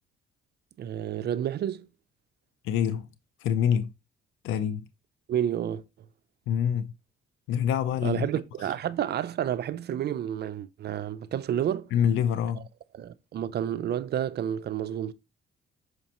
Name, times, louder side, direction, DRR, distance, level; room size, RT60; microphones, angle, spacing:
voice 1, 0.8-1.9 5.3-5.8 8.0-11.9 12.9-15.1, right 10 dB, 55° right, 0.4 m, -30 dB
voice 2, 2.6-3.1 3.4-3.9 4.4-4.9 6.5-6.9 7.5-8.3 8.6-8.7 11.9-12.7, left 8 dB, 85° left, 0.5 m, -26 dB
6.4 x 5.1 x 2.9 m
cardioid pair, 90°, 20 cm